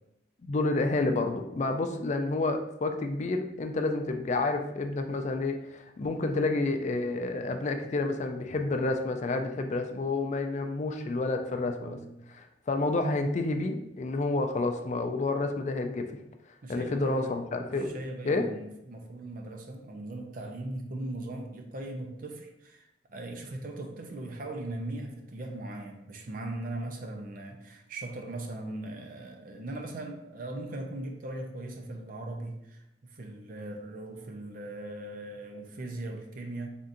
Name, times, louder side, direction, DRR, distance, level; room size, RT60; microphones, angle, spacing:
voice 1, 0.4-12.0 12.3-16.1 16.7-17.9 18.3-18.5, left 2 dB, 40° left, 5 dB, 0.4 m, -29 dB
voice 2, 11.8-12.1 16.6-17.4 17.8-36.7, right 2 dB, 50° right, 3 dB, 0.5 m, -39 dB
4.0 x 3.6 x 2.5 m, 0.86 s
head